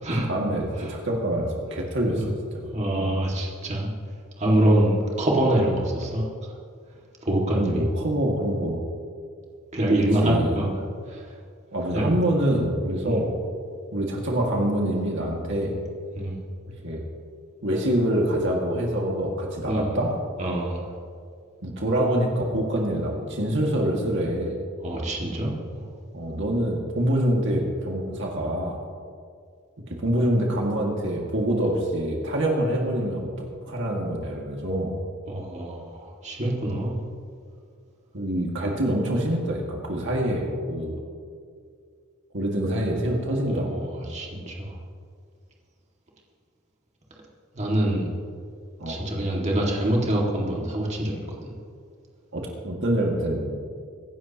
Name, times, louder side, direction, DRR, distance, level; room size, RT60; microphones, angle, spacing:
voice 1, 0.3-2.6 3.0-3.2 7.6-8.8 9.9-10.6 11.7-13.3 13.9-15.8 16.8-17.0 17.6-20.1 21.6-24.6 26.1-28.8 29.9-33.3 33.6-34.9 38.1-41.0 42.3-43.8 48.8-49.0 52.3-53.5, right 1 dB, 65° right, -1 dB, 2.1 m, -25 dB
voice 2, 2.7-3.9 4.4-6.3 7.2-7.8 9.7-10.7 11.1-11.2 11.9-12.2 13.0-13.2 15.6-15.7 16.2-16.4 19.6-20.0 20.4-20.9 24.8-25.8 35.3-37.0 43.5-44.8 47.5-48.1 48.9-51.5, right 1 dB, 35° right, -2 dB, 2.1 m, -25 dB
24.0 x 11.0 x 3.0 m, 2.2 s
head